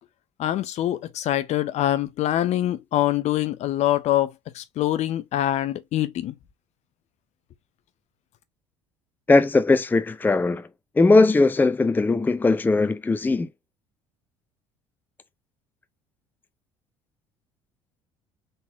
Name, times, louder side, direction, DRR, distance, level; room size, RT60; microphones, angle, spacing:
voice 1, 0.4-6.3, left 13 dB, 55° left, 0.6 m, -24 dB
voice 2, 9.3-10.7 11.0-13.5, left 3 dB, 15° left, 0.5 m, -19 dB
3.9 x 3.9 x 2.6 m
hypercardioid pair, 60°, 14 cm